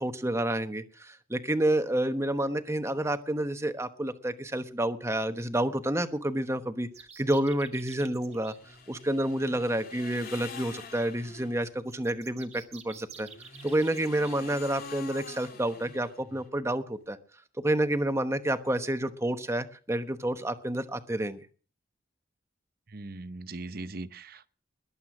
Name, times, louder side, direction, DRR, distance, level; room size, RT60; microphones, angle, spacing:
voice 1, 0.0-8.5 8.9-13.3 13.6-17.2 17.6-21.4, right 1 dB, 15° right, 1.1 m, -29 dB
sound 1, 6.9-8.6 11.9-14.4, right 6 dB, 35° right, 1.6 m, -50 dB
sound 2, 8.5-11.7 13.1-16.5, left 4 dB, 50° left, 3.0 m, -46 dB
voice 2, 22.9-24.5, right 2 dB, 50° right, 0.8 m, -40 dB
21.0 x 8.3 x 6.1 m
head